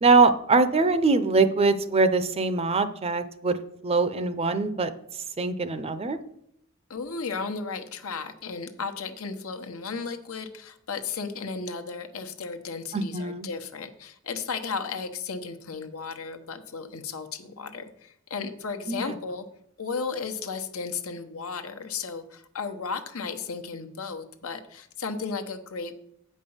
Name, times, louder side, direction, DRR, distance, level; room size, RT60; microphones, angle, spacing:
voice 1, 0.0-3.6 3.8-4.9 5.4-6.2 12.9-13.5 18.9-19.2, right 3 dB, 30° right, 12 dB, 0.6 m, -23 dB
voice 2, 6.9-19.4 19.8-26.0, left 5 dB, 80° left, 7 dB, 1.1 m, -34 dB
8.7 x 5.4 x 7.1 m, 0.74 s
head